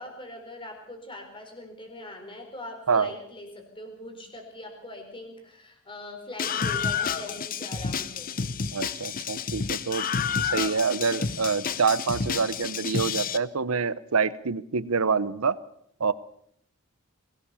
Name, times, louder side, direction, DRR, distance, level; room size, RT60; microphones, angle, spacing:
voice 1, 0.0-8.4, left 1 dB, 25° left, 4 dB, 4.5 m, -42 dB
Screaming, 6.4-13.4, left 6 dB, 40° left, 0.8 m, -30 dB
voice 2, 8.7-10.1 10.4-15.6 16.0-16.1, right 5 dB, 90° right, 15 dB, 0.8 m, -26 dB
22.0 x 17.5 x 7.0 m, 0.69 s
head